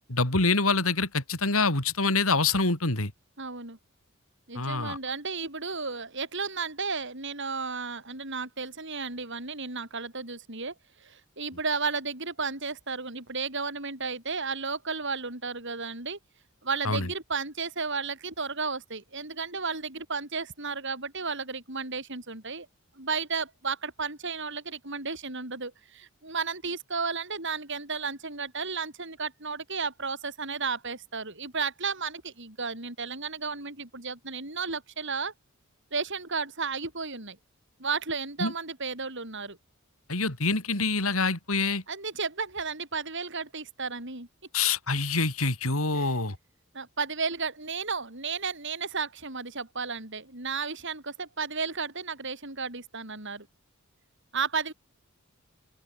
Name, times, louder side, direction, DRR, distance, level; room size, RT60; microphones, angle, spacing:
voice 1, 0.1-3.1 4.5-5.0 16.8-17.1 38.4-38.5 40.1-41.8 44.5-46.4, left 3 dB, 80° left, 4.9 m, -26 dB
voice 2, 3.4-3.8 4.5-10.7 11.0-16.2 16.6-22.7 23.0-35.3 35.9-37.4 37.8-39.6 41.9-44.3 45.9-46.1 46.7-53.5 54.3-54.7, right 4 dB, 60° right, 7.0 m, -33 dB
open air
head